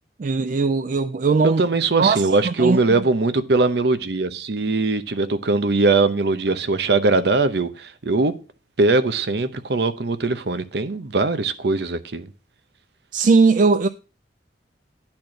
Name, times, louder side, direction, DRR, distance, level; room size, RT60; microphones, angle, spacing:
voice 1, 0.2-1.6 2.0-2.8 13.1-13.9, right 4 dB, 45° right, 0.3 m, -19 dB
voice 2, 1.4-8.4 8.8-12.3, right 3 dB, 60° right, 0.8 m, -21 dB
10.5 x 4.4 x 6.4 m
head